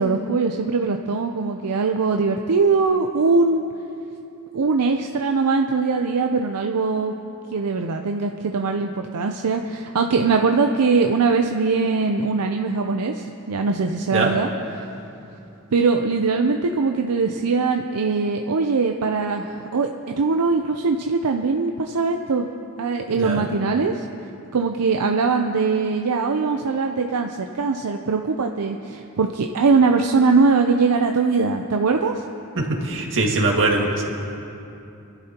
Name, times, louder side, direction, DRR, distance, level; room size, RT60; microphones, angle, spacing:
voice 1, 0.0-3.6 4.5-7.1 7.5-14.5 15.7-22.5 22.8-24.0 24.5-32.1, right 4 dB, 85° right, 4 dB, 0.6 m, -21 dB
voice 2, 32.6-34.0, right 2 dB, 60° right, -1 dB, 2.0 m, -22 dB
26.5 x 11.5 x 2.9 m, 2.8 s
head